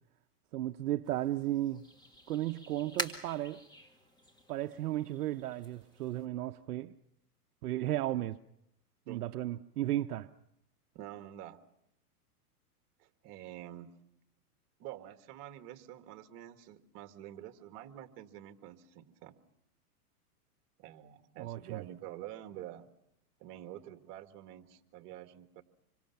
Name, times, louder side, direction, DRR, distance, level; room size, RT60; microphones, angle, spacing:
voice 1, 0.5-1.8 2.3-3.6 4.5-6.9 7.6-8.4 9.1-10.3 21.4-21.8, right 14 dB, 75° right, 0.8 m, -34 dB
sound 1, 1.0-6.3, equal, 10° left, 1.9 m, -45 dB
voice 2, 10.9-11.6 13.0-13.9 14.8-19.4 20.8-22.9 23.4-25.6, right 12 dB, 40° right, 1.8 m, -47 dB
26.5 x 24.5 x 5.8 m
hypercardioid pair, 140°, 46 cm